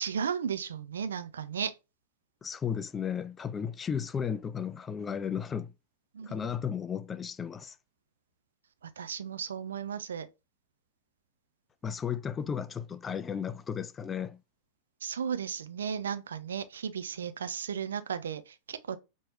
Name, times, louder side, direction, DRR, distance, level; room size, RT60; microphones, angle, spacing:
voice 1, 0.0-1.7 6.1-6.5 9.0-10.3 15.0-19.0, right 7 dB, 65° right, 0.5 m, -35 dB
voice 2, 2.4-5.7 6.3-7.8 11.8-14.4, left 7 dB, 20° left, 0.3 m, -34 dB
4.5 x 3.0 x 2.5 m
figure-of-eight pair, 90°, 0 cm